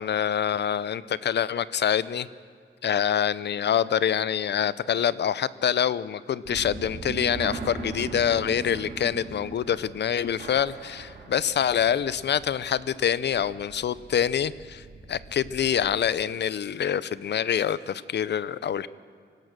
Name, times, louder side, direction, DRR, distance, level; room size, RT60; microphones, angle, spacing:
voice 1, 0.0-2.3 2.8-18.9, left 9 dB, 60° left, 18 dB, 0.6 m, -26 dB
sound 1, 6.4-16.0, right 4 dB, 65° right, 2.8 m, -40 dB
25.5 x 17.0 x 6.7 m, 2.1 s
wide cardioid pair, 130°, 20 cm